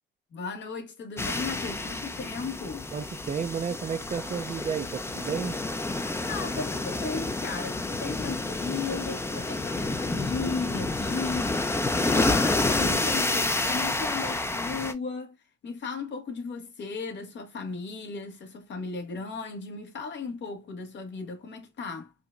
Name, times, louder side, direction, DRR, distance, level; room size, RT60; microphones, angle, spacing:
voice 1, 0.3-2.9 6.2-15.4 15.6-22.1, left 4 dB, 65° left, 1.3 m, -36 dB
sound 1, 1.2-14.9, left 2 dB, 15° left, 0.5 m, -29 dB
voice 2, 2.9-5.6, right 6 dB, 35° right, 0.5 m, -32 dB
4.8 x 2.2 x 2.5 m
cardioid pair, 90°, 20 cm